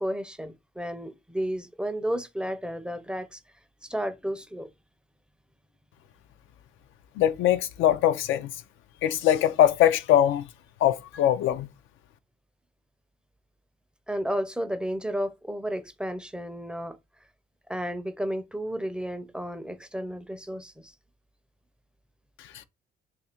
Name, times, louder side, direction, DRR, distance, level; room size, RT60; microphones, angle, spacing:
voice 1, 0.0-3.4 3.8-4.7 14.1-17.0 17.7-20.9, equal, 5° right, 0.4 m, -32 dB
voice 2, 7.2-8.5 9.0-10.5 10.8-11.7, left 11 dB, 85° left, 0.4 m, -22 dB
2.7 x 2.5 x 4.2 m
cardioid pair, 90°, 20 cm